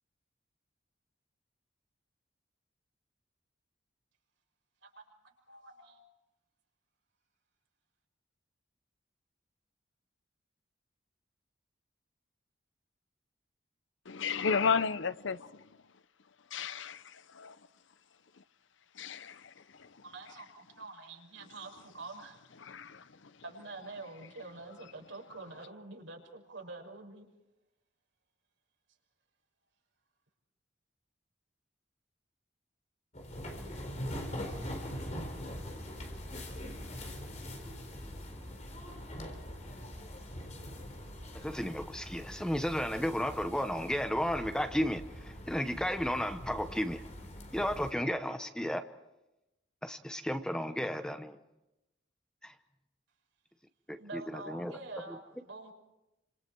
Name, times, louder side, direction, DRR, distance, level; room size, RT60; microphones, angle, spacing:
voice 1, 5.5-6.1 20.0-22.4 23.4-27.3 54.0-55.7, right 3 dB, 85° right, 6.0 m, -46 dB
voice 2, 14.1-15.7 16.5-17.6 18.4-18.5 18.9-20.0 22.6-23.3, left 5 dB, 80° left, 0.8 m, -34 dB
sound 1, 33.1-47.9, equal, 35° left, 4.1 m, -43 dB
voice 3, 41.3-47.0 47.5-48.8 49.8-51.4 52.4-52.5 53.9-54.8, equal, 5° left, 0.9 m, -33 dB
28.0 x 26.5 x 4.7 m
head